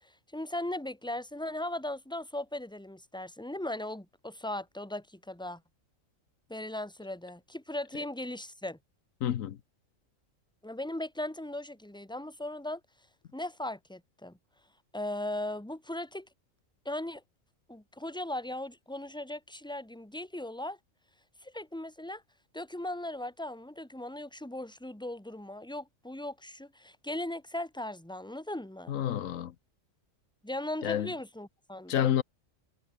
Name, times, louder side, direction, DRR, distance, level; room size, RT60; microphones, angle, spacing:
voice 1, 0.0-5.6 6.5-8.8 10.6-12.8 13.3-14.4 14.9-16.3 16.9-17.2 17.7-20.8 21.4-22.2 22.5-28.9 30.4-32.1, left 1 dB, 5° left, 2.1 m, -38 dB
voice 2, 9.2-9.6 28.9-29.5 30.8-31.1 31.9-32.2, left 10 dB, 80° left, 1.2 m, -29 dB
omnidirectional pair, 1.4 m